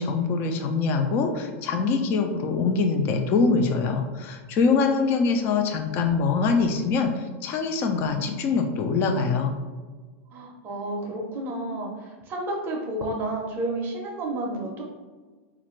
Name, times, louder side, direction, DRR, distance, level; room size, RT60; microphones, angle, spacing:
voice 1, 0.0-9.5, left 4 dB, 30° left, 5 dB, 0.4 m, -24 dB
voice 2, 10.3-14.8, right 1 dB, 25° right, 0 dB, 0.6 m, -31 dB
4.2 x 2.5 x 3.0 m, 1.4 s
supercardioid pair, 160°, 8 cm